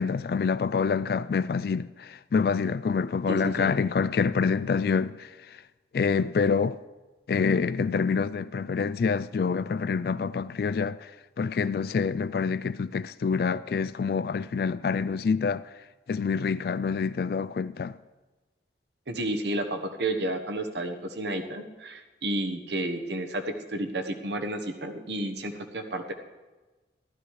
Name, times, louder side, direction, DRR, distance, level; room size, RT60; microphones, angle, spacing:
voice 1, 0.0-5.3 5.9-6.8 7.3-11.1 11.4-15.7 16.1-18.0, left 5 dB, 55° left, 0.3 m, -26 dB
voice 2, 3.3-3.7 19.1-26.1, right 1 dB, 75° right, 1.3 m, -31 dB
15.0 x 12.5 x 4.9 m
head